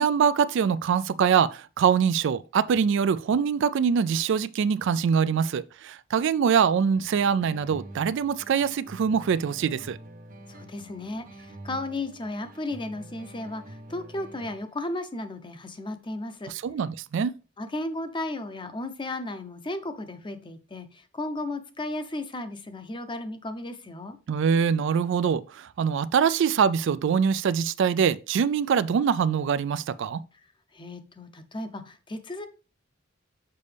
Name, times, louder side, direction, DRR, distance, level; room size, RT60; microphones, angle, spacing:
voice 1, 0.0-10.0 16.5-17.3 24.3-30.2, right 7 dB, 65° right, 0.3 m, -24 dB
sound 1, 6.9-14.9, right 1 dB, 45° right, 0.7 m, -46 dB
voice 2, 10.5-16.5 17.6-24.2 30.7-32.5, left 2 dB, 25° left, 0.7 m, -35 dB
6.8 x 5.3 x 3.4 m
head